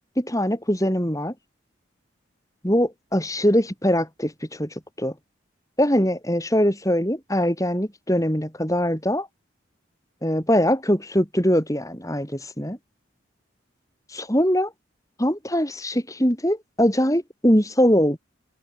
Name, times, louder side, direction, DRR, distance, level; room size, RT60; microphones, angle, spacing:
voice 1, 0.2-1.3 2.6-4.7 5.0-5.1 5.8-9.3 10.2-12.8 14.1-14.7 15.2-18.2, equal, 15° left, 7.3 m, -22 dB
head